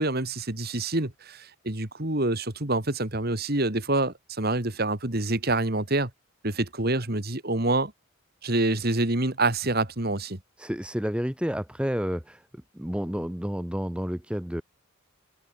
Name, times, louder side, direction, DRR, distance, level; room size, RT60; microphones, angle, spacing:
voice 1, 0.0-6.1 6.4-7.9 8.4-10.4, right 2 dB, 45° right, 2.5 m, -26 dB
voice 2, 10.6-12.4 12.7-14.6, equal, 5° right, 1.2 m, -30 dB
open air
head